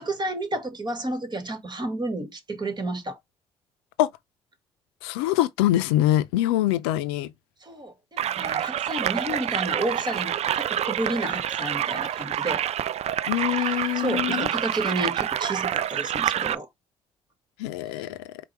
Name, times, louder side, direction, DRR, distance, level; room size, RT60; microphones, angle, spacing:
voice 1, 0.0-3.2 7.6-12.6 13.5-16.7 17.9-18.1, right 1 dB, 35° right, 1.6 m, -31 dB
voice 2, 5.0-7.3 13.3-14.5 17.6-18.3, left 14 dB, 90° left, 0.4 m, -24 dB
sound 1, 8.2-16.6, right 10 dB, 55° right, 0.4 m, -27 dB
4.6 x 2.3 x 4.5 m
hypercardioid pair, 45°, 13 cm